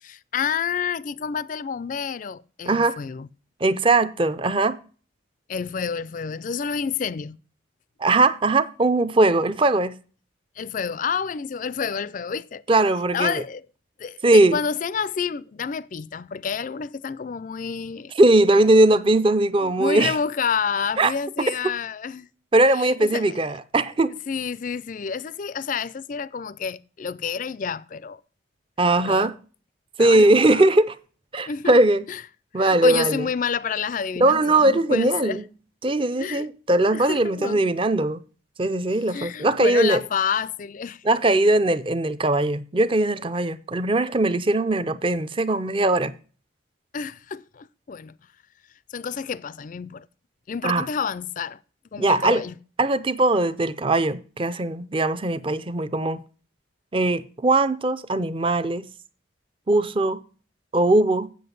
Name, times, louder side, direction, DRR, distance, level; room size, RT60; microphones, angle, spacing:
voice 1, 0.0-3.3 5.5-7.4 10.6-12.6 13.1-13.7 14.0-18.1 19.6-22.3 22.7-23.4 24.3-28.2 29.0-29.3 30.0-30.6 31.5-31.8 32.1-32.2 32.5-35.4 36.2-36.5 36.9-37.6 39.1-41.0 46.9-48.1 48.9-50.1 50.5-51.6 51.9-52.6, left 6 dB, 40° left, 0.3 m, -29 dB
voice 2, 2.7-3.0 3.6-4.8 8.0-9.9 12.7-13.4 14.2-14.6 18.2-20.1 21.0-21.1 22.5-24.2 28.8-29.3 30.0-31.0 31.3-32.1 32.5-33.3 34.2-35.5 35.8-38.2 38.6-40.0 41.0-46.1 50.6-50.9 52.0-52.4 52.8-56.2 56.9-58.9 59.7-60.2 60.7-61.3, right 2 dB, 25° right, 0.5 m, -20 dB
7.8 x 7.7 x 5.3 m
head